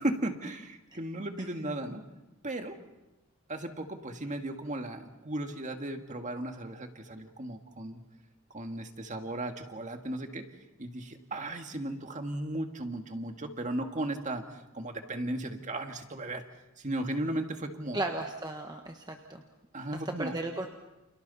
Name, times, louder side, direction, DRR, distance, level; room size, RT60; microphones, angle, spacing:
voice 1, 0.0-2.0 2.4-2.8 3.5-8.0 8.5-10.4 10.8-14.4 14.7-16.4 16.8-18.0 19.7-20.3, right 1 dB, 35° right, 5 dB, 1.8 m, -36 dB
voice 2, 17.9-19.4 19.9-20.7, right 2 dB, 20° right, 3 dB, 1.3 m, -35 dB
29.5 x 28.5 x 4.2 m, 0.97 s
head